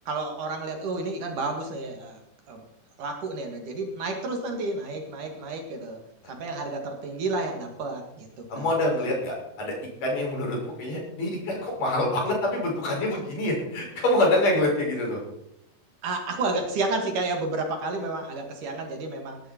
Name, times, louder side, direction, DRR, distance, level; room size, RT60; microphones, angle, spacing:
voice 1, 0.1-2.2 2.5-2.6 3.0-6.0 6.3-8.8 16.0-19.4, right 3 dB, 60° right, 3 dB, 3.5 m, -31 dB
voice 2, 8.5-9.7 10.0-15.2, left 1 dB, 65° left, -2 dB, 7.6 m, -26 dB
19.0 x 12.0 x 4.5 m, 0.80 s
omnidirectional pair, 4.1 m